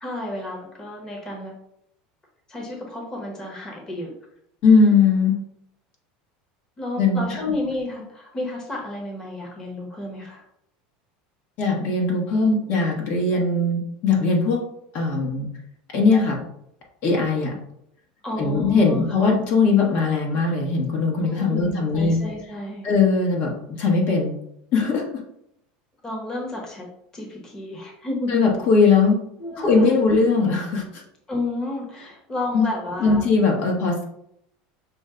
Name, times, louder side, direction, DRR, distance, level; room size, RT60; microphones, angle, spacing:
voice 1, 0.0-1.5 2.5-4.1 6.8-10.4 18.2-19.1 21.2-22.9 26.0-26.9 27.1-28.4 29.4-30.1 31.3-33.3, left 2 dB, 15° left, -2 dB, 1.1 m, -31 dB
voice 2, 4.6-5.4 7.0-7.4 11.6-14.6 14.9-15.5 15.9-16.4 17.0-17.5 18.4-22.2 22.8-23.5 23.8-24.3 24.7-25.2 28.3-29.2 29.6-31.0 32.5-32.7 33.0-34.0, left 4 dB, 50° left, 0 dB, 1.2 m, -20 dB
6.1 x 2.2 x 3.7 m, 0.75 s
supercardioid pair, 140°, 4 cm